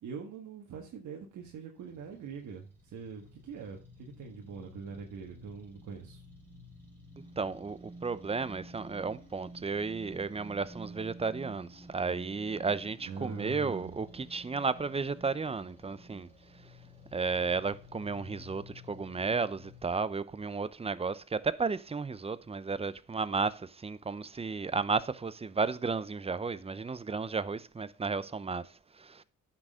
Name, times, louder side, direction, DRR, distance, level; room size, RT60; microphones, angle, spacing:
voice 1, 0.0-6.2 13.0-13.9, right 6 dB, 75° right, 1.7 m, -43 dB
sound 1, 1.8-19.8, equal, 5° left, 4.2 m, -52 dB
voice 2, 7.4-16.3 17.1-28.6 29.0-29.2, right 4 dB, 20° right, 0.7 m, -33 dB
9.7 x 6.3 x 3.6 m
cardioid pair, 90°, 30 cm